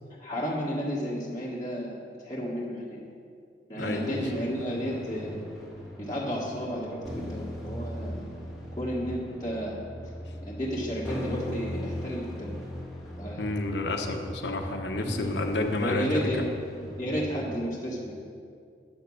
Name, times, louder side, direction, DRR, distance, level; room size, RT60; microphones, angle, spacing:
voice 1, 0.2-3.1 3.7-5.4 6.0-8.2 8.8-9.8 10.4-12.5 13.2-13.5 15.0-15.1 15.8-16.5 17.0-18.1, equal, 20° left, -7 dB, 1.4 m, -32 dB
voice 2, 3.8-4.2 13.4-16.3, left 2 dB, 75° left, 4 dB, 1.0 m, -30 dB
sound 1, 3.8-17.6, left 1 dB, ahead, 1.8 m, -39 dB
9.6 x 6.8 x 7.0 m, 2.3 s
head